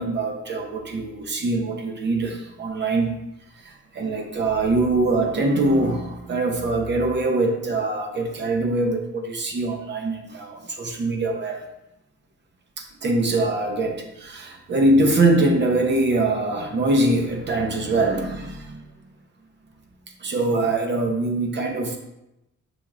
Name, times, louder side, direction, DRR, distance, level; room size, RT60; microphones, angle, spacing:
voice 1, 0.0-3.1 3.6-11.6 12.8-18.8 20.2-22.0, right 2 dB, 35° right, 3 dB, 0.7 m, -23 dB
6.8 x 2.9 x 2.4 m, 0.90 s
wide cardioid pair, 140°, 30 cm